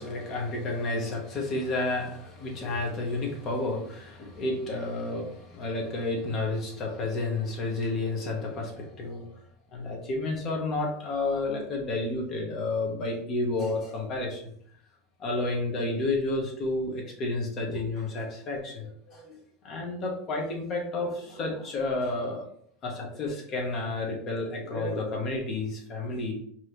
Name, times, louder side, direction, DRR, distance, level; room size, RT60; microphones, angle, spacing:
voice 1, 0.0-9.3 9.7-14.5 15.2-19.3 19.6-22.4 22.8-26.3, left 2 dB, 40° left, 0 dB, 1.4 m, -31 dB
4.5 x 3.0 x 3.3 m, 0.64 s
supercardioid pair, 120°, 0 cm